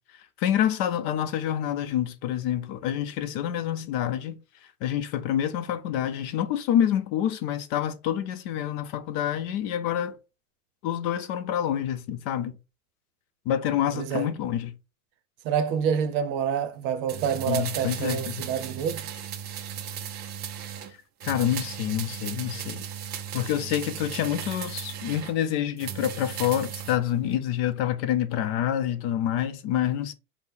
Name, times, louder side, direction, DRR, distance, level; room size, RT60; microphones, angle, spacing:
voice 1, 0.4-4.4 4.8-10.2 10.8-12.5 13.5-14.7 17.5-18.3 21.2-22.8 23.3-30.1, left 10 dB, 45° left, 0.6 m, -27 dB
voice 2, 13.9-14.3 15.4-19.1, right 8 dB, 50° right, 0.7 m, -27 dB
sound 1, 17.1-20.9 21.2-25.4 25.8-27.0 27.3-27.4, right 9 dB, 25° right, 0.3 m, -36 dB
3.6 x 2.2 x 4.4 m
supercardioid pair, 115°, 44 cm